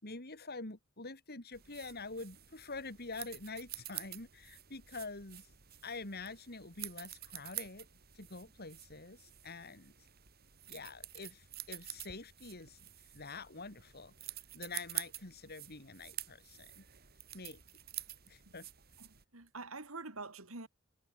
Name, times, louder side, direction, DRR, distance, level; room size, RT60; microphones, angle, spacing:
voice 1, 0.0-5.5 5.8-7.9 8.1-9.9 10.7-14.1 14.5-16.8 17.3-17.6 18.3-18.7, left 3 dB, 50° left, 3.9 m, -46 dB
sound 1, 1.5-19.2, right 13 dB, 50° right, 3.5 m, -48 dB
voice 2, 19.0-20.7, right 3 dB, 75° right, 3.2 m, -46 dB
head